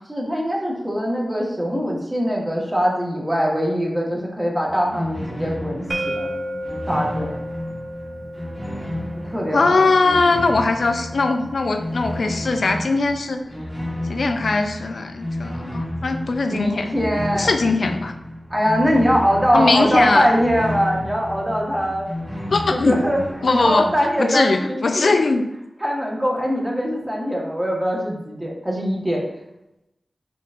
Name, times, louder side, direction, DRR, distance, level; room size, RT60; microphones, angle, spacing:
voice 1, 0.1-6.3 6.9-7.3 9.2-10.2 16.5-17.5 18.5-22.1 22.7-23.2 23.5-25.1 25.8-29.2, equal, 20° right, -2 dB, 1.3 m, -22 dB
sound 1, 4.7-23.9, left 1 dB, ahead, 1.3 m, -32 dB
sound 2, 5.9-11.7, right 1 dB, 55° right, 0.5 m, -33 dB
voice 2, 9.5-13.4 14.1-16.9 17.3-18.1 19.5-20.3 22.5-23.0 23.4-23.9 24.2-25.4, left 3 dB, 75° left, 6 dB, 0.4 m, -20 dB
4.6 x 3.9 x 2.5 m, 0.89 s
wide cardioid pair, 70°, 0 cm